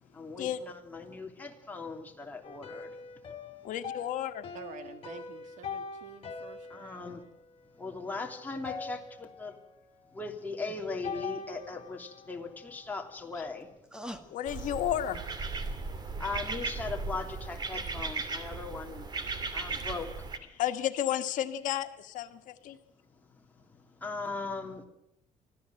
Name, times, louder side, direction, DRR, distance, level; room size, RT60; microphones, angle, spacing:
voice 1, 0.1-2.9 6.7-7.2 7.8-9.6 10.1-13.7 16.2-19.1 19.5-20.1 24.0-24.9, left 3 dB, 15° left, 1 dB, 3.1 m, -39 dB
sound 1, 2.4-8.2 8.6-9.8 11.0-13.2, left 5 dB, 45° left, 3.1 m, -43 dB
voice 2, 3.6-4.4 14.3-15.2 20.5-22.8, left 11 dB, 80° left, 8 dB, 1.6 m, -32 dB
voice 3, 4.5-7.2, right 7 dB, 75° right, 9 dB, 2.3 m, -49 dB
sound 2, 10.3-10.4 10.7-10.8 12.7-15.8 16.2-16.3, equal, 5° right, 1.7 m, -48 dB
sound 3, 14.5-20.4, right 4 dB, 30° right, 2.4 m, -36 dB
24.5 x 16.0 x 7.7 m, 0.81 s
cardioid pair, 140°, 13 cm